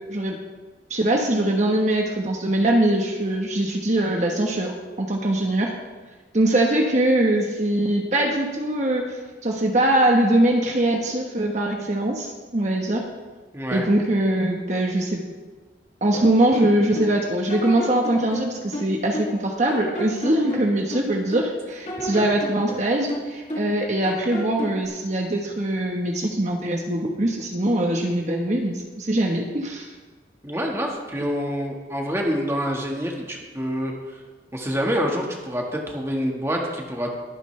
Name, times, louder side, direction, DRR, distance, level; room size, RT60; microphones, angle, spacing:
voice 1, 0.9-4.7 5.0-5.7 6.3-13.0 13.7-15.2 16.0-29.9, right 1 dB, 40° right, 1 dB, 1.2 m, -22 dB
voice 2, 13.5-13.9 22.1-22.3 30.4-33.9 34.5-37.1, equal, 15° right, 0 dB, 1.6 m, -27 dB
sound 1, 16.1-17.1 17.5-19.4 19.7-21.5 21.8-23.8 24.0-24.8, equal, 40° left, 2.7 m, -32 dB
22.5 x 9.3 x 3.3 m, 1.3 s
head